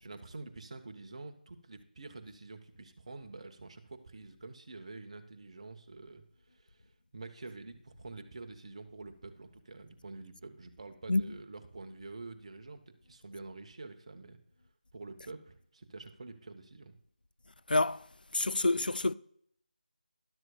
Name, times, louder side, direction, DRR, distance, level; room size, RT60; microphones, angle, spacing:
voice 1, 0.0-14.4 14.9-17.0, right 3 dB, 40° right, 1.0 m, -47 dB
voice 2, 17.7-18.1 18.3-19.1, left 2 dB, 70° left, 0.4 m, -27 dB
12.5 x 11.5 x 2.3 m
figure-of-eight pair, 160°, 5 cm